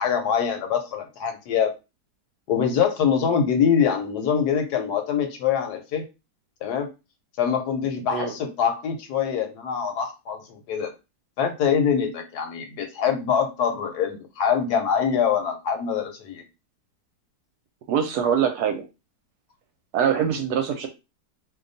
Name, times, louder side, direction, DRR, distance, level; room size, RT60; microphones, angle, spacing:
voice 1, 0.0-1.7 2.5-6.0 6.6-6.9 7.4-10.9 11.4-16.4, left 7 dB, 70° left, 5 dB, 1.1 m, -24 dB
voice 2, 17.9-18.8 19.9-20.9, right 8 dB, 70° right, 5 dB, 1.0 m, -23 dB
2.8 x 2.2 x 3.8 m, 0.27 s
omnidirectional pair, 1.9 m